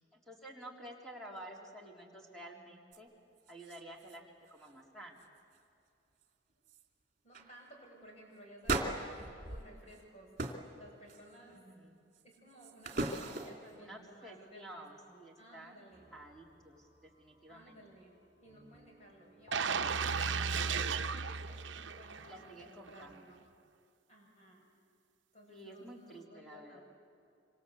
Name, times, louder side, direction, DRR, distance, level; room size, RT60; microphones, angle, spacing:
voice 1, 0.1-3.1 3.5-5.2 11.5-12.0 13.8-15.8 16.1-17.8 22.2-23.3 25.5-26.8, right 1 dB, ahead, -1 dB, 3.8 m, -51 dB
sound 1, 2.9-3.0 3.4-4.2 4.4-4.8 5.2-5.6 6.2-6.3 6.6-6.9 7.3-7.5 8.6-10.0 10.4-10.7 11.1-11.6 12.1-13.7 19.7-21.1, right 2 dB, 45° right, 2.7 m, -40 dB
voice 2, 7.2-10.3 10.8-11.6 12.2-16.0 17.5-21.6 21.9-23.4 24.1-24.7 25.3-26.8, right 1 dB, 35° left, -1 dB, 7.1 m, -57 dB
sound 2, 15.9-21.1, right 3 dB, 25° right, 4.1 m, -58 dB
sound 3, 19.5-22.5 22.9-23.0, right 5 dB, 70° right, 0.8 m, -34 dB
26.5 x 26.0 x 8.3 m, 2.5 s
head